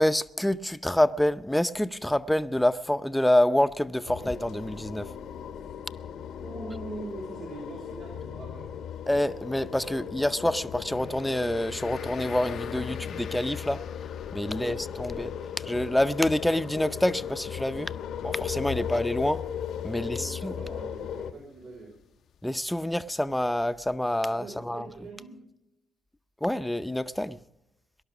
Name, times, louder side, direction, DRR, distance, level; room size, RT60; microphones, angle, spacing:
voice 1, 0.0-5.1 9.1-13.8 14.3-15.3 15.7-17.9 18.2-19.4 19.8-20.5 22.4-24.9 26.4-27.4, left 1 dB, 5° left, 0.6 m, -27 dB
sound 1, 4.1-21.3, left 8 dB, 80° left, 1.0 m, -37 dB
voice 2, 6.4-8.8 9.8-10.1 14.4-14.8 18.7-18.9 19.9-21.9 24.3-25.4, right 2 dB, 75° right, 4.7 m, -42 dB
sound 2, 10.9-23.9, left 8 dB, 65° left, 0.6 m, -48 dB
19.0 x 11.5 x 6.1 m
cardioid pair, 90°, 0 cm